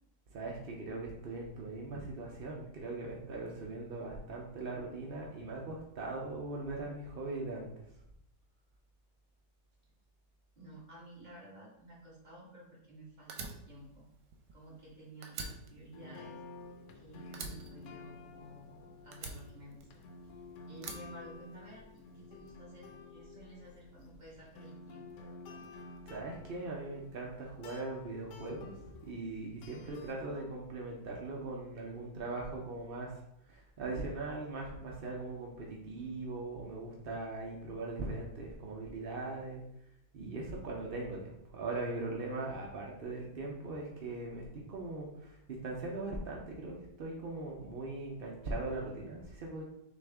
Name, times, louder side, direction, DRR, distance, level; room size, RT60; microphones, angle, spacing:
voice 1, 0.3-7.9 26.1-33.1 33.5-39.6 40.1-49.6, right 2 dB, 60° right, -2 dB, 0.5 m, -40 dB
voice 2, 10.6-14.0 14.5-16.3 16.9-18.7 19.0-20.0 20.7-25.7, right 1 dB, 25° right, -6 dB, 1.6 m, -53 dB
Fire, 13.3-14.9 15.2-17.0 17.3-18.7 19.1-20.3 20.8-21.9, right 4 dB, 90° right, 1.3 m, -45 dB
sound 1, 15.5-15.7 15.9-30.5, left 3 dB, 85° left, 1.3 m, -52 dB
6.1 x 2.5 x 3.4 m, 0.79 s
omnidirectional pair, 1.8 m